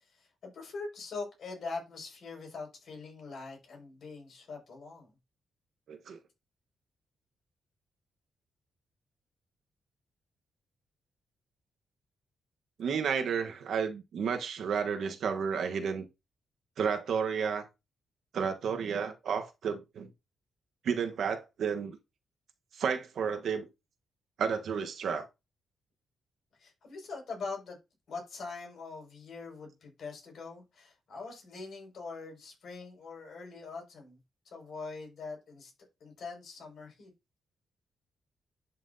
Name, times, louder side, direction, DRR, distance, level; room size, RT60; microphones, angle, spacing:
voice 1, 0.1-5.1 26.6-27.8 28.1-34.2 34.5-35.7 36.0-37.1, left 4 dB, 55° left, 5.8 m, -43 dB
voice 2, 5.9-6.2 12.8-16.0 16.8-17.7 18.3-20.1 20.8-22.0 22.7-23.7 24.4-25.3, right 6 dB, 65° right, 1.2 m, -32 dB
11.5 x 6.0 x 2.8 m
cardioid pair, 145°, 0 cm